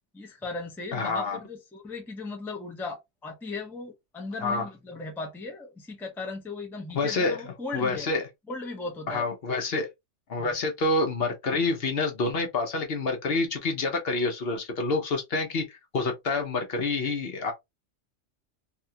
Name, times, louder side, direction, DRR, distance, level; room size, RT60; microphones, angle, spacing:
voice 1, 0.1-8.1 8.5-9.3 10.4-10.6, left 3 dB, ahead, 0.5 m, -37 dB
voice 2, 0.9-1.4 4.4-4.7 6.9-7.4 7.7-8.2 9.1-9.9 10.3-17.5, left 3 dB, 60° left, 0.9 m, -27 dB
2.7 x 2.3 x 2.7 m
omnidirectional pair, 1.2 m